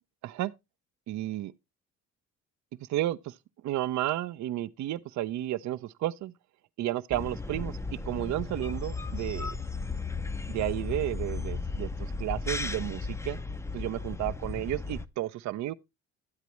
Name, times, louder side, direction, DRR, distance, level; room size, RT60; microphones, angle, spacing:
voice 1, 0.2-0.5 1.1-1.5 2.9-3.3 3.6-6.3 6.8-9.5 10.5-13.4 13.7-15.7, right 14 dB, 55° right, 0.5 m, -32 dB
sound 1, 7.1-15.1, left 3 dB, 10° left, 0.5 m, -35 dB
10.5 x 8.3 x 3.0 m
supercardioid pair, 70°, 34 cm